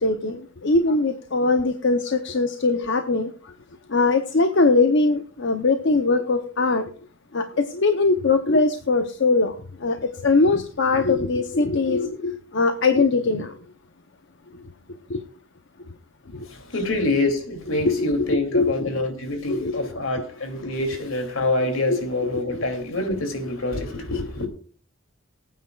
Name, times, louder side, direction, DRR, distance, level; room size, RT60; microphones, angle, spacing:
voice 1, 0.0-3.5 3.9-6.9 7.3-13.6 14.5-14.6 15.1-15.2 16.3-16.5 17.8-19.0 19.5-19.9 20.2-20.3 21.9-22.6, left 3 dB, 60° left, 0.8 m, -22 dB
voice 2, 16.5-24.5, left 2 dB, 80° left, 2.7 m, -26 dB
22.5 x 9.2 x 2.4 m
head